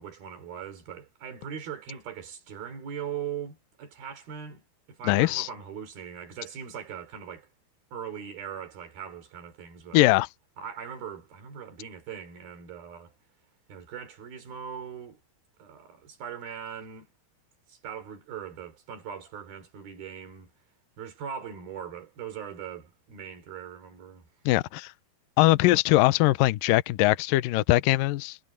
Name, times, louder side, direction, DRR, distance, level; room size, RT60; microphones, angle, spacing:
voice 1, 0.0-4.6 4.9-7.5 7.9-10.0 10.6-13.1 13.7-15.2 15.6-17.1 17.7-20.5 21.0-24.3, right 8 dB, 60° right, 5.2 m, -40 dB
voice 2, 5.0-5.5 9.9-10.3 24.5-24.9 25.4-28.4, left 18 dB, 85° left, 2.0 m, -21 dB
omnidirectional pair, 4.9 m